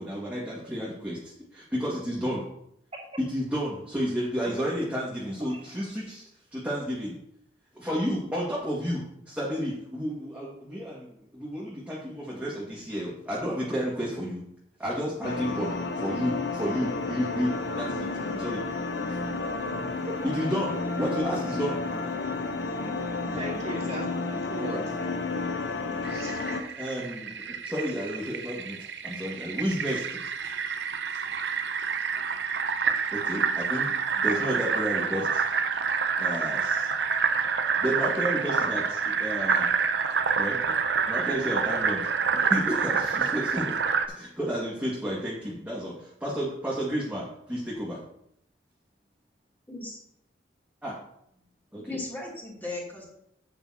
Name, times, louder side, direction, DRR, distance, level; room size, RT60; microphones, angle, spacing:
voice 1, 0.0-2.5 3.2-6.2 6.5-7.2 7.7-14.4 14.8-18.6 19.1-19.2 20.2-21.8 24.6-24.8 26.8-28.8 29.0-30.5 31.1-31.2 33.1-35.4 36.2-36.9 37.8-39.7 40.4-40.7 41.1-43.8 44.1-48.0 50.8-50.9 51.7-51.8, equal, 10° right, -7 dB, 2.0 m, -31 dB
sound 1, 15.2-26.6, left 3 dB, 80° left, 1.0 m, -31 dB
voice 2, 23.2-25.1 25.8-26.4, right 1 dB, 35° right, -4 dB, 2.6 m, -39 dB
Fill (with liquid), 26.0-44.1, right 5 dB, 75° right, 0.8 m, -28 dB
voice 3, 49.7-50.0 51.8-53.0, left 2 dB, 10° left, -5 dB, 3.1 m, -36 dB
10.5 x 8.7 x 2.9 m, 0.74 s
head